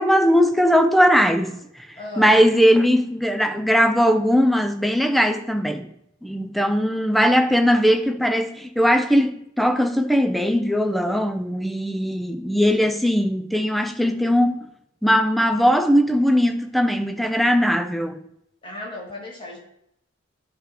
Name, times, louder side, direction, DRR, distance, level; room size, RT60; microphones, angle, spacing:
voice 1, 0.0-1.9 2.2-5.9 6.2-14.7 15.0-18.2, equal, ahead, 0.4 m, -19 dB
voice 2, 2.0-2.5 18.6-19.6, left 2 dB, 25° left, 1.9 m, -35 dB
9.8 x 3.4 x 4.4 m
head